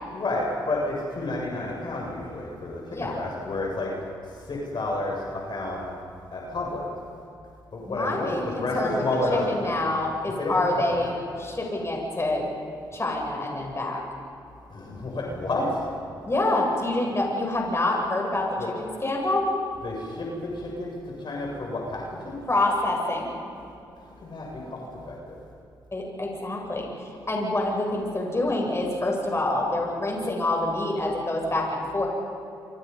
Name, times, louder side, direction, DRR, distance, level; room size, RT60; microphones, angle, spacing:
voice 1, 0.1-3.9 4.3-5.9 6.3-6.9 7.7-9.5 10.4-11.1 14.7-15.9 18.6-18.7 19.8-22.4 24.0-25.4, left 2 dB, 50° left, -2 dB, 7.3 m, -30 dB
voice 2, 7.9-9.0 9.5-12.5 12.9-14.0 16.2-18.5 18.8-19.5 22.5-23.3 25.9-32.1, left 2 dB, 25° left, -1 dB, 7.8 m, -26 dB
28.0 x 27.0 x 5.6 m, 2.6 s
supercardioid pair, 50°, 10 cm